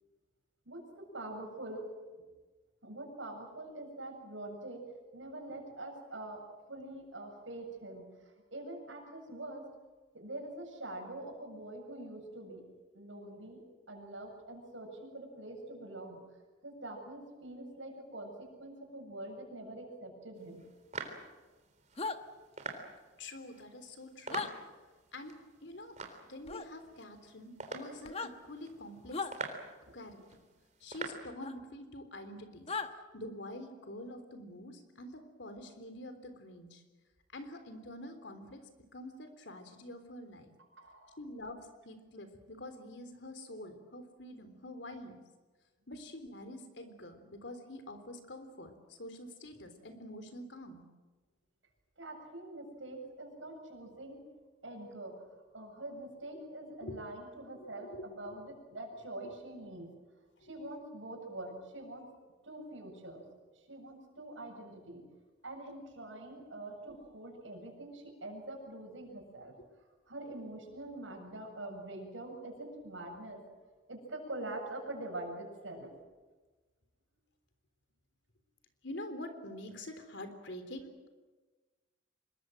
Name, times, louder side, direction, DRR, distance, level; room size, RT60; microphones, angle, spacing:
voice 1, 0.7-1.9 2.2-2.3 2.8-4.8 5.1-6.4 6.7-9.7 10.1-12.6 12.9-13.6 13.9-16.2 16.6-20.6 29.9-30.0 40.8-41.2 52.0-54.2 54.6-55.1 55.5-59.9 60.4-62.1 62.4-63.3 63.6-65.0 65.4-69.5 70.1-73.4 73.9-75.9, right 1 dB, 80° right, 2 dB, 7.7 m, -45 dB
sound 1, 20.3-31.2, right 4 dB, 40° right, 3.7 m, -47 dB
sound 2, 22.0-22.2 24.3-24.5 26.5-26.7 28.0-28.3 29.1-29.3 31.4-31.5 32.7-32.9, left 4 dB, 30° left, 1.2 m, -36 dB
voice 2, 23.2-24.5 25.1-25.3 25.6-26.0 26.3-29.3 29.9-30.4 30.8-36.8 37.3-40.5 41.2-45.2 45.9-50.8 56.3-56.4 56.8-57.0 57.5-58.4 59.2-59.4 59.7-59.8 60.4-60.5 78.8-80.9, left 1 dB, 65° left, 8 dB, 3.6 m, -46 dB
26.0 x 22.0 x 7.8 m, 1.3 s
head